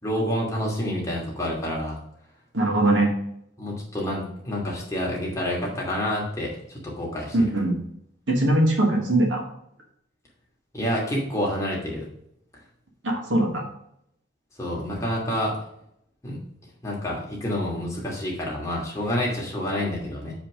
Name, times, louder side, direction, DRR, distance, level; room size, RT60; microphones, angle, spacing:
voice 1, 0.0-2.0 3.6-7.3 10.7-12.1 14.6-15.6 16.2-16.4 16.8-20.3, left 1 dB, 15° left, -4 dB, 2.5 m, -28 dB
voice 2, 2.5-3.1 7.3-7.8 8.3-9.4 13.0-13.6, right 1 dB, 75° right, 0 dB, 2.3 m, -21 dB
7.6 x 5.1 x 4.9 m, 0.73 s
head